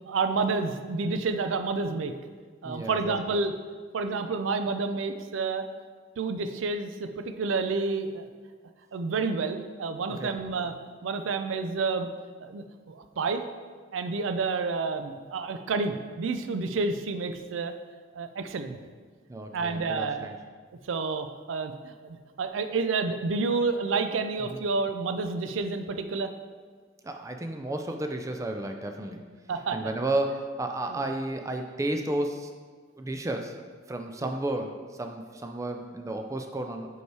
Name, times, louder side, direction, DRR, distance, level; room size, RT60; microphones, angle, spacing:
voice 1, 0.1-2.1 2.6-3.5 3.9-5.6 6.2-8.3 8.9-10.7 11.0-12.1 12.4-13.4 13.9-17.7 18.1-18.8 19.5-20.3 20.9-26.3 29.5-29.8 30.9-31.0 34.2-34.3, right 4 dB, 90° right, 8 dB, 0.4 m, -29 dB
voice 2, 2.6-3.4 10.2-10.4 19.3-20.4 24.4-24.6 27.0-29.2 29.7-32.5 33.0-33.5 33.9-36.9, right 1 dB, 15° right, 4 dB, 0.4 m, -32 dB
5.3 x 4.8 x 4.7 m, 1.5 s
head